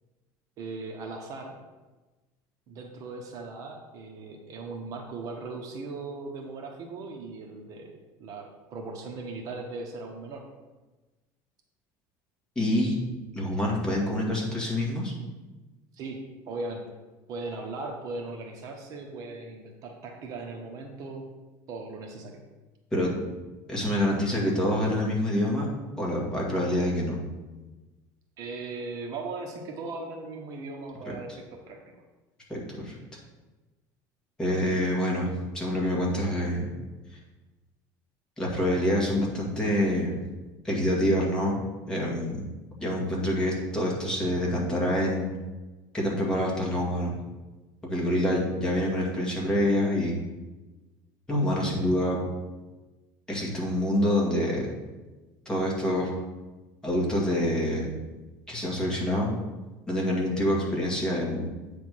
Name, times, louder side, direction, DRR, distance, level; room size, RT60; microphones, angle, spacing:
voice 1, 0.6-1.5 2.7-10.4 15.9-16.8 17.3-21.3 21.7-22.4 28.4-31.8, right 3 dB, 45° right, 2 dB, 1.0 m, -38 dB
voice 2, 12.5-13.0 13.3-15.1 22.9-23.1 23.7-25.7 26.0-27.2 32.5-33.0 34.4-35.3 35.5-36.7 38.4-40.1 40.6-41.6 41.9-42.5 42.8-45.3 45.9-47.1 47.8-50.2 51.3-52.2 53.3-54.7 55.4-56.1 56.8-57.9 58.5-59.3 59.9-61.5, left 1 dB, 10° left, -4 dB, 1.7 m, -26 dB
8.3 x 3.5 x 6.2 m, 1.2 s
cardioid pair, 150°, 8 cm